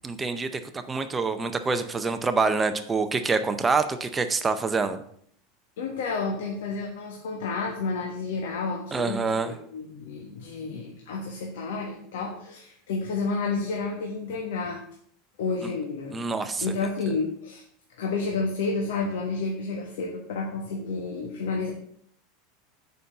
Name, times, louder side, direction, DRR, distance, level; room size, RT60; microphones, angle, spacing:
voice 1, 0.0-5.0 8.9-9.5 15.6-15.7 16.1-16.7, right 4 dB, 10° right, 9 dB, 0.6 m, -26 dB
voice 2, 5.8-14.8 15.4-16.2 16.6-17.6 18.0-21.7, left 4 dB, 85° left, 1 dB, 1.4 m, -30 dB
6.8 x 5.4 x 6.4 m, 0.65 s
supercardioid pair, 170°, 0 cm